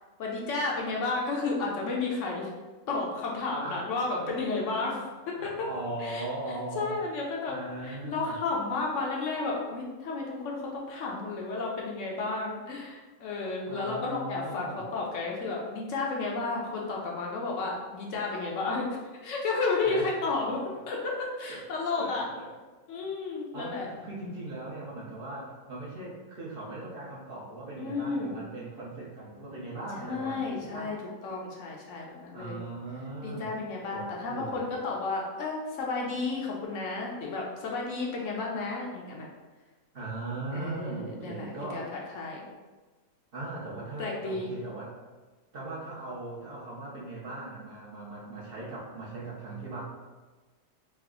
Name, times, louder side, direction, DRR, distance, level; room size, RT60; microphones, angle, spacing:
voice 1, 0.2-2.5 2.9-5.0 5.3-5.7 6.0-6.2 6.8-7.5 7.8-18.9 19.2-22.3 22.9-23.9 27.8-28.4 30.0-31.0 31.2-32.6 33.2-39.3 40.5-42.5 44.0-44.5, left 3 dB, 70° left, -2 dB, 0.9 m, -32 dB
voice 2, 3.6-4.2 4.9-5.1 5.4-7.1 7.5-8.3 13.7-14.8 19.8-20.0 21.5-21.6 22.0-22.5 23.5-30.9 32.3-33.5 33.9-34.6 39.9-41.9 43.3-44.9 45.5-49.8, right 2 dB, 50° right, -6 dB, 0.7 m, -39 dB
3.2 x 2.0 x 3.6 m, 1.3 s
omnidirectional pair, 1.5 m